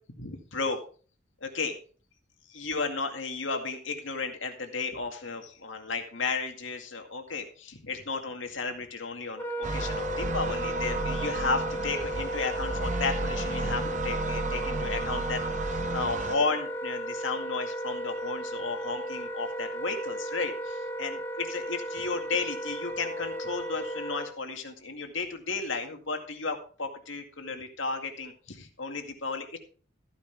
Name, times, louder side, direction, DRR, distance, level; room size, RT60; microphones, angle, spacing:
voice 1, 0.2-0.8 1.4-1.8 2.5-29.6, left 4 dB, 75° left, 5 dB, 2.2 m, -34 dB
Wind instrument woodwind instrument, 9.3-24.3, equal, 10° left, 1.2 m, -35 dB
sound 1, 9.6-16.4, right 3 dB, 40° right, 0.7 m, -33 dB
14.5 x 9.8 x 3.5 m, 0.40 s
head